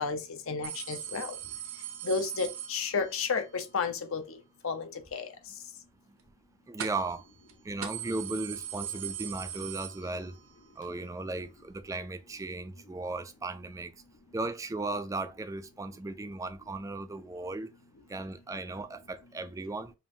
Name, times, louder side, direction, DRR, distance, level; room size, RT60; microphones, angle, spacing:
voice 1, 0.0-1.4 2.0-4.4 4.6-5.3, left 5 dB, 60° left, 0.7 m, -32 dB
sound 1, 0.6-3.3 6.8-7.2 7.5-7.6 7.8-10.5 10.9-11.0 12.0-12.1, right 10 dB, 60° right, 0.7 m, -40 dB
voice 2, 6.7-7.2 7.6-10.3 10.8-13.9 14.3-17.7 18.1-19.9, right 2 dB, 15° right, 0.3 m, -36 dB
5.3 x 2.5 x 2.7 m
head